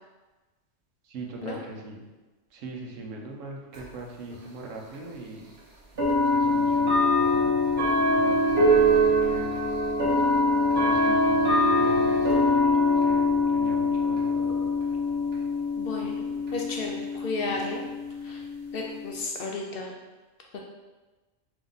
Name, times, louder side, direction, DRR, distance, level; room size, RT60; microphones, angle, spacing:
voice 1, 1.0-2.1 2.5-5.5 6.3-7.6 7.9-8.9 9.3-9.6 10.8-12.5 13.0-14.3, right 2 dB, 85° right, 1 dB, 1.1 m, -41 dB
sound 1, 3.7-3.8 4.9-5.0 6.0-19.2, left 1 dB, 60° right, 1.1 m, -23 dB
voice 2, 14.3-14.7 15.8-17.8 18.2-18.4 18.7-20.0 20.5-20.6, left 3 dB, 60° left, 1 dB, 0.6 m, -34 dB
3.6 x 2.9 x 3.9 m, 1.2 s
omnidirectional pair, 1.3 m